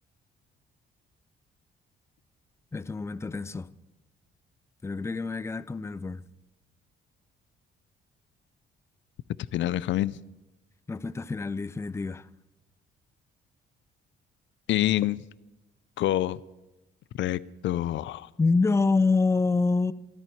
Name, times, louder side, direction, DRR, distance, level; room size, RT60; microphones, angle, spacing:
voice 1, 2.7-3.7 4.8-6.2 10.9-12.3 18.4-19.9, left 3 dB, 15° left, 0.5 m, -26 dB
voice 2, 9.5-10.2 14.7-15.2 16.0-16.4 17.1-18.3, left 14 dB, 70° left, 0.4 m, -26 dB
14.0 x 14.0 x 4.5 m
cardioid pair, 90°, 20 cm